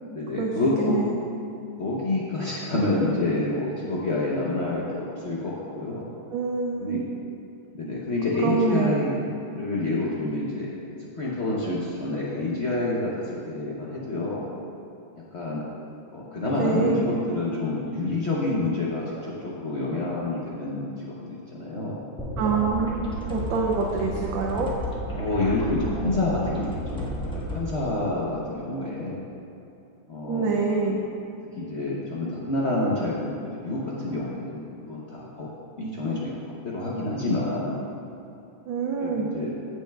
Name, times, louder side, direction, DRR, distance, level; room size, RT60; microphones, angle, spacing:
voice 1, 0.1-1.0 1.8-6.1 6.8-7.0 7.7-9.2 9.5-14.4 15.3-15.6 16.1-22.0 25.1-29.2 30.1-30.5 30.9-31.0 31.6-33.3 33.6-35.5 35.8-36.3 36.6-37.8 39.0-39.5, left 2 dB, 50° left, -6 dB, 0.8 m, -28 dB
voice 2, 0.8-1.2 6.3-7.1 8.4-8.9 16.5-17.1 22.4-24.7 30.3-31.0 38.7-39.3, right 4 dB, 75° right, -1 dB, 1.4 m, -26 dB
sound 1, 22.2-27.6, equal, 5° left, 0.4 m, -32 dB
15.0 x 6.3 x 2.3 m, 2.8 s
omnidirectional pair, 2.2 m